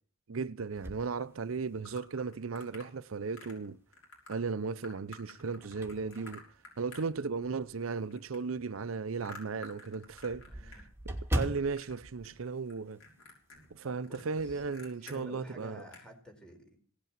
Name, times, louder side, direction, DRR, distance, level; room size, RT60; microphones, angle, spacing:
voice 1, 0.3-3.8 4.3-6.4 6.8-13.0 13.7-15.8, right 4 dB, 70° right, 0.6 m, -36 dB
sound 1, 0.7-2.1 2.6-2.7 4.2-4.7 5.2-7.8 8.3-8.4 8.8-8.9 9.2-9.3 9.5-13.3 13.5-13.8 14.1-14.7, right 1 dB, 10° right, 2.8 m, -40 dB
sound 2, 1.9-2.9 3.4-3.7 3.9-4.4 4.8-7.6 7.9-10.8 11.1-12.0 12.2-12.7 13.0-15.2 15.6-15.7 15.9-16.1, left 2 dB, 80° left, 6.3 m, -51 dB
voice 2, 10.4-10.8 13.8-14.6 15.0-16.8, equal, 5° left, 4.5 m, -51 dB
17.5 x 8.3 x 7.4 m
head